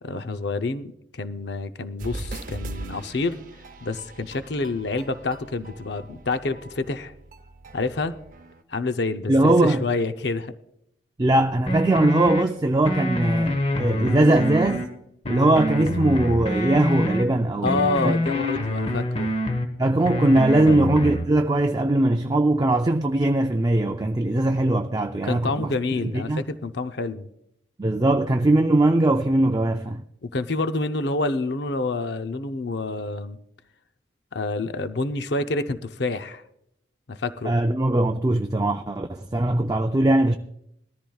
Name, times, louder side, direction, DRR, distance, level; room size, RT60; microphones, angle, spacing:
voice 1, 0.0-3.4 3.8-7.1 7.7-8.1 8.7-10.5 17.6-19.3 20.7-20.8 25.2-27.3 30.2-33.4 34.3-36.4 37.1-37.5, left 3 dB, 55° left, 0.7 m, -28 dB
sound 1, 2.0-8.6, right 2 dB, 40° right, 0.7 m, -40 dB
voice 2, 9.3-9.8 11.2-14.9 15.3-18.1 19.8-25.7 26.0-26.4 27.8-30.0 37.4-40.4, right 2 dB, 20° right, 0.4 m, -20 dB
sound 2, 11.7-12.4 12.8-14.9 15.2-17.2 17.6-19.7 20.0-21.3, left 1 dB, 30° left, 1.2 m, -26 dB
20.5 x 13.5 x 2.3 m
head